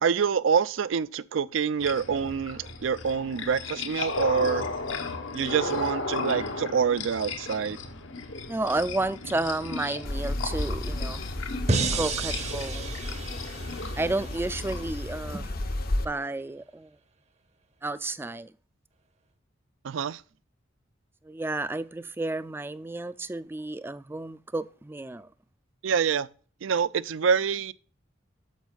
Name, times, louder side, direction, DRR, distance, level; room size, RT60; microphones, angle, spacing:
voice 1, 0.0-4.6 5.3-7.8 19.8-20.2 25.8-26.3 26.6-27.7, right 6 dB, 80° right, 0.4 m, -26 dB
sound 1, 1.8-15.0, left 3 dB, 85° left, 1.0 m, -35 dB
voice 2, 8.5-11.2 11.9-13.0 14.0-15.7 16.0-17.0 17.8-18.5 21.2-25.3, right 2 dB, 10° right, 0.3 m, -32 dB
sound 2, 10.0-16.0, left 1 dB, 50° left, 0.6 m, -33 dB
sound 3, 11.7-14.8, right 3 dB, 35° right, 0.7 m, -31 dB
9.3 x 7.2 x 2.3 m
head